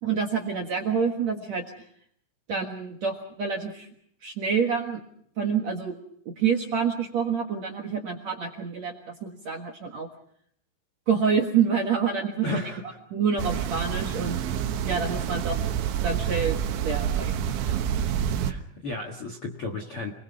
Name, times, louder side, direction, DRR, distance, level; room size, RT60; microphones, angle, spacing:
voice 1, 0.0-1.6 2.5-3.9 4.2-5.0 5.4-6.0 6.3-10.1 11.1-12.6 13.1-14.5 14.9-15.6 16.0-17.8, right 6 dB, 55° right, 2 dB, 2.0 m, -27 dB
voice 2, 12.4-13.0 18.4-20.1, left 2 dB, 50° left, 4 dB, 1.6 m, -33 dB
sound 1, 13.4-18.5, right 9 dB, 90° right, 3.6 m, -28 dB
28.5 x 20.5 x 5.8 m, 0.67 s
omnidirectional pair, 5.1 m